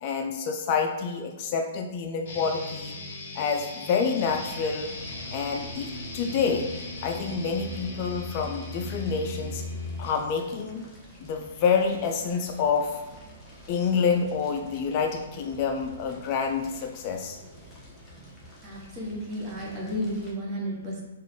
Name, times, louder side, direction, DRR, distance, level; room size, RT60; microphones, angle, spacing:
voice 1, 0.0-3.0 3.4-4.9 5.3-6.7 7.0-9.6 10.0-10.8 11.2-13.0 13.7-17.4, left 5 dB, 40° left, 4 dB, 0.3 m, -27 dB
sound 1, 2.3-10.3, left 2 dB, 60° left, 0.8 m, -37 dB
Fire, 4.2-20.3, equal, 10° left, 0.9 m, -49 dB
voice 2, 18.6-21.0, equal, 25° right, -4 dB, 1.1 m, -32 dB
3.7 x 2.4 x 3.1 m, 1.1 s
hypercardioid pair, 125°, 0 cm